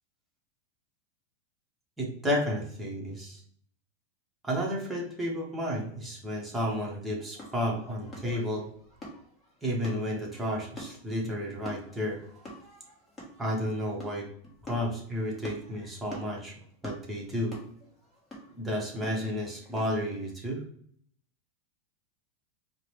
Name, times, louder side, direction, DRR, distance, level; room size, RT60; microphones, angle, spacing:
voice 1, 2.0-3.4 4.4-8.7 9.6-12.2 13.4-14.3 14.7-16.6 16.8-17.6 18.6-20.6, equal, 10° right, -1 dB, 1.1 m, -32 dB
sound 1, 7.3-20.1, equal, 15° left, 1.3 m, -47 dB
4.7 x 2.2 x 3.2 m, 0.62 s
supercardioid pair, 140°, 0 cm